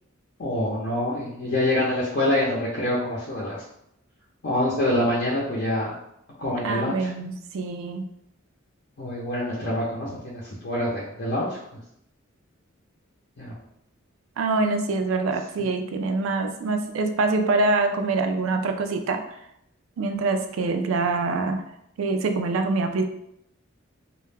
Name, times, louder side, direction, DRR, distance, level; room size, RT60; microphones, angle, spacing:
voice 1, 0.4-3.6 4.4-5.9 6.4-7.1 9.0-11.5 13.4-13.5 15.6-15.7, left 1 dB, 55° left, -6 dB, 0.6 m, -26 dB
voice 2, 6.6-8.1 14.4-19.4 20.0-21.7 22.0-23.0, right 3 dB, 70° right, 6 dB, 0.3 m, -25 dB
2.2 x 2.0 x 3.2 m, 0.76 s
head